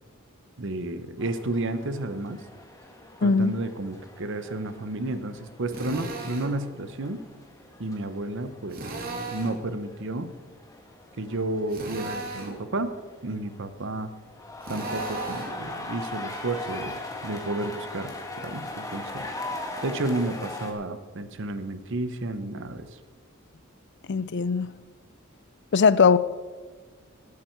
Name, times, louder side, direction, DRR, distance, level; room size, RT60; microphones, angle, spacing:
voice 1, 0.6-2.4 3.2-7.2 7.8-8.8 9.3-10.3 11.2-12.9 13.2-14.1 14.7-18.1 18.4-19.3 19.8-22.9, right 2 dB, 60° right, 11 dB, 1.0 m, -31 dB
sound 1, 1.2-20.7, left 2 dB, 15° left, 1.7 m, -40 dB
voice 2, 3.2-3.5 24.1-24.7 25.7-26.2, left 5 dB, 55° left, 17 dB, 0.5 m, -20 dB
Drill, 5.7-6.6 8.7-9.6 11.7-12.6 14.6-15.6, right 3 dB, 45° right, 2.2 m, -35 dB
19.5 x 8.6 x 4.6 m, 1.5 s
head